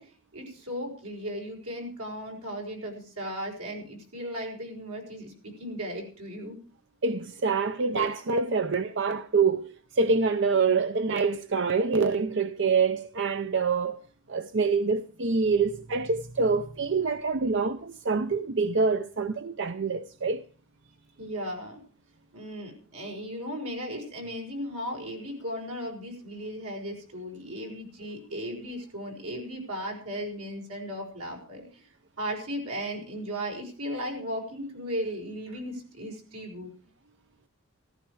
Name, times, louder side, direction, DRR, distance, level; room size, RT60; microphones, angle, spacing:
voice 1, 0.0-6.6 21.2-21.8 22.3-31.8 32.2-36.7, equal, 85° right, 5.3 m, -36 dB
voice 2, 7.0-14.0 14.3-20.4, right 4 dB, 55° right, 0.6 m, -26 dB
14.5 x 13.5 x 4.7 m
head